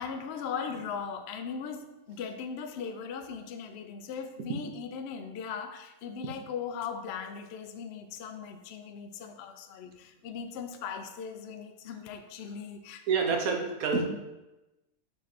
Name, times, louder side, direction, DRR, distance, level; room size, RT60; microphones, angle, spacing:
voice 1, 0.0-13.1, left 6 dB, 65° left, 7 dB, 0.6 m, -39 dB
voice 2, 13.1-14.0, right 5 dB, 75° right, 2 dB, 1.3 m, -27 dB
7.3 x 3.2 x 4.0 m, 1.0 s
omnidirectional pair, 1.5 m